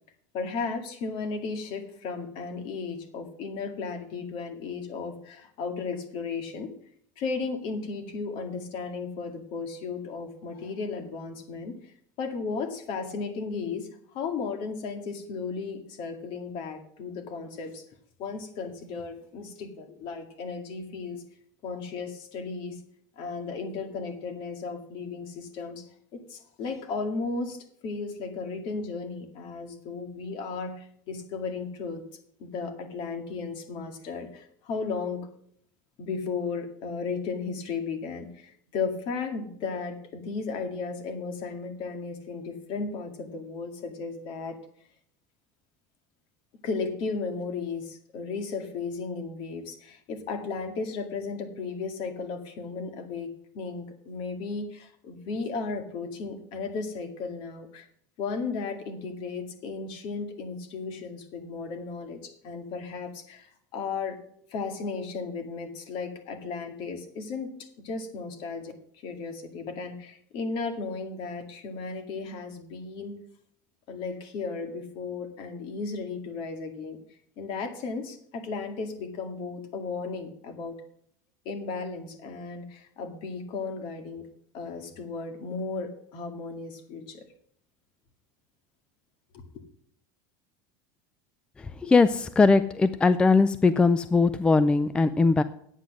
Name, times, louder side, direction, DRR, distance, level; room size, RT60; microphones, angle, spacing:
voice 1, 0.3-6.7 7.2-17.8 18.2-21.2 21.6-22.8 23.1-25.9 26.1-32.0 32.4-35.3 36.0-44.6 46.6-57.9 58.2-64.2 64.5-68.7 69.0-73.2 73.9-77.0 77.4-80.8 81.5-84.3 84.5-87.2 89.3-89.6, left 4 dB, 55° left, 6 dB, 2.1 m, -35 dB
voice 2, 91.8-95.4, left 3 dB, 10° left, 13 dB, 0.3 m, -20 dB
9.1 x 8.4 x 6.1 m, 0.65 s
supercardioid pair, 150°, 10 cm